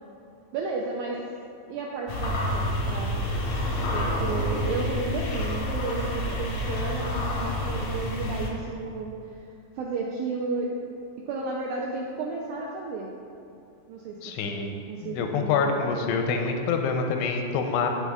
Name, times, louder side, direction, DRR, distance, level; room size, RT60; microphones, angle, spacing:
voice 1, 0.5-1.2 1.7-3.3 3.9-6.1 6.4-9.1 9.8-10.7 11.3-13.1 13.9-16.1, right 4 dB, 85° right, -2 dB, 2.0 m, -33 dB
sound 1, 2.1-8.5, left 1 dB, 60° left, 1.8 m, -28 dB
voice 2, 14.2-14.7 15.0-17.9, left 5 dB, 90° left, 4 dB, 2.7 m, -26 dB
16.0 x 5.6 x 2.4 m, 2.7 s
omnidirectional pair, 4.8 m